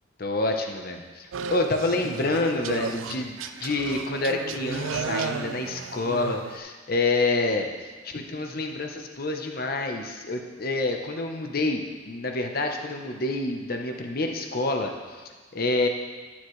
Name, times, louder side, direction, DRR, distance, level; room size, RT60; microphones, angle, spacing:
voice 1, 0.2-15.2 15.5-15.9, left 2 dB, 50° left, 3 dB, 0.9 m, -28 dB
sound 1, 1.3-6.6, right 5 dB, 85° right, 0.4 m, -34 dB
11.5 x 7.2 x 3.2 m, 1.4 s
head